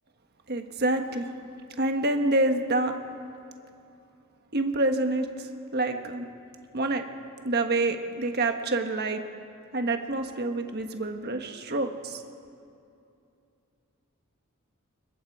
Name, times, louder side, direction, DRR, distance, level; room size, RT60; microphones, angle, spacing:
voice 1, 0.5-1.3 1.8-3.0 4.5-6.3 6.7-7.0 7.4-9.2 9.7-12.2, right 2 dB, 45° right, 5 dB, 1.4 m, -27 dB
25.0 x 22.0 x 4.9 m, 2.6 s
head